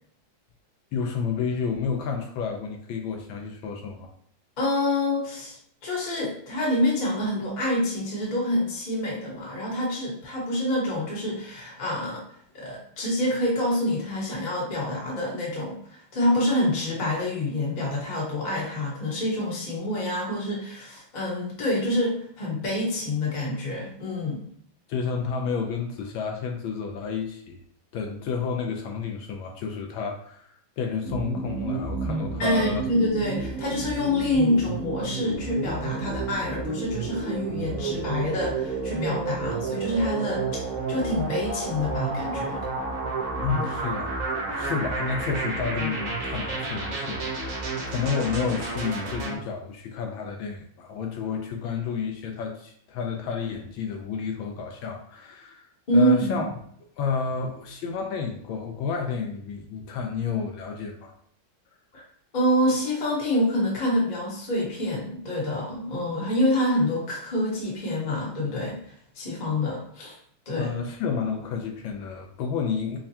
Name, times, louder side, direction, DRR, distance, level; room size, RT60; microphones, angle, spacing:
voice 1, 0.9-4.1 24.9-27.6 27.9-32.9 43.4-44.2 44.5-56.5 57.0-61.1 70.6-73.0, left 6 dB, 75° left, 3 dB, 1.3 m, -30 dB
voice 2, 4.6-12.2 12.5-24.4 32.4-40.6 40.9-42.6 55.9-56.5 61.9-62.0 62.3-70.1 70.5-70.7, left 1 dB, 30° left, -4 dB, 0.8 m, -26 dB
sound 1, 31.1-49.3, right 3 dB, 75° right, 0.7 m, -31 dB
5.5 x 2.2 x 2.7 m, 0.64 s
omnidirectional pair, 2.3 m